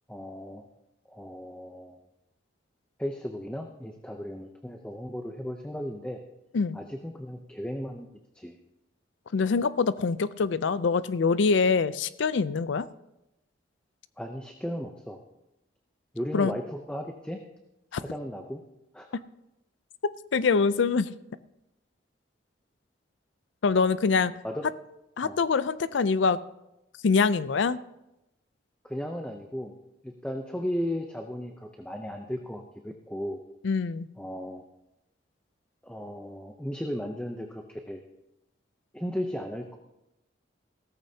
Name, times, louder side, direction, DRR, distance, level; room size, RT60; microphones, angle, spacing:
voice 1, 0.1-0.7 1.1-2.0 3.0-6.2 6.7-8.1 8.3-8.6 14.2-15.2 16.1-17.4 18.0-18.6 18.9-19.2 24.4-24.7 25.2-25.4 28.8-29.7 30.0-33.4 34.2-34.6 35.8-38.0 38.9-39.8, equal, 5° left, 3 dB, 0.6 m, -35 dB
voice 2, 9.3-12.9 16.3-16.5 17.9-18.0 20.3-21.1 23.6-24.3 25.2-26.4 27.0-27.8 33.6-34.1, left 4 dB, 75° left, 15 dB, 0.4 m, -24 dB
16.0 x 14.0 x 2.8 m, 0.90 s
head